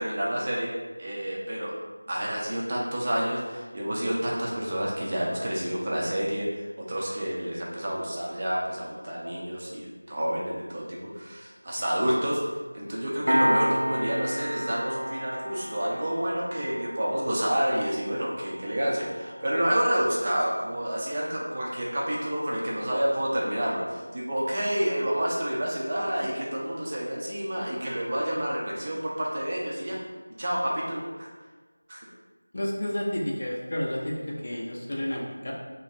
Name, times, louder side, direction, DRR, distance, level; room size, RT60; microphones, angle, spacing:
voice 1, 0.0-1.7 2.1-12.4 12.7-30.0 30.4-31.3 31.9-32.0, equal, 20° right, -5 dB, 0.4 m, -29 dB
Piano, 13.3-24.4, equal, 80° right, 0.6 m, -33 dB
voice 2, 32.5-35.5, left 1 dB, 30° left, -3 dB, 0.5 m, -31 dB
2.9 x 2.4 x 4.2 m, 1.3 s
figure-of-eight pair, 175°, 0 cm